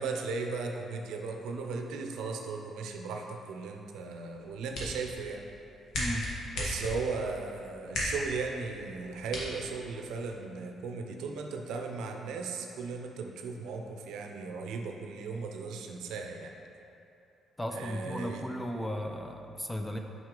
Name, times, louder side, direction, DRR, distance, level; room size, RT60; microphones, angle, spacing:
voice 1, 0.0-5.4 6.6-16.5 17.7-18.4, right 4 dB, 85° right, 3 dB, 0.5 m, -37 dB
sound 1, 4.3-10.3, left 1 dB, 70° left, 1.5 m, -38 dB
voice 2, 6.0-6.3 17.6-20.0, equal, 5° left, 3 dB, 0.5 m, -35 dB
6.0 x 5.3 x 3.8 m, 2.8 s
cardioid pair, 90°, 0 cm